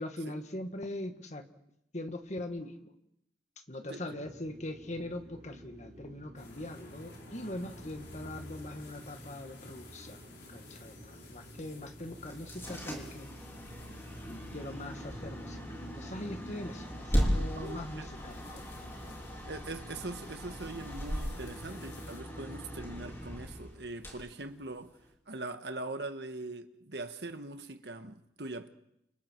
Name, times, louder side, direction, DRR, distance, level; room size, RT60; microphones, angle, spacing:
voice 1, 0.0-1.4 1.9-2.9 3.7-10.2 10.5-13.3 14.3-18.6, left 1 dB, 40° left, 1.9 m, -41 dB
sound 1, 4.0-23.7, equal, 45° right, 4.4 m, -51 dB
sound 2, 6.4-22.2, left 1 dB, 65° left, 4.9 m, -52 dB
sound 3, 12.2-25.1, equal, 15° left, 4.9 m, -38 dB
voice 2, 17.5-18.1 19.4-24.9 25.3-28.7, right 2 dB, 65° right, 1.5 m, -42 dB
29.5 x 27.5 x 4.7 m
head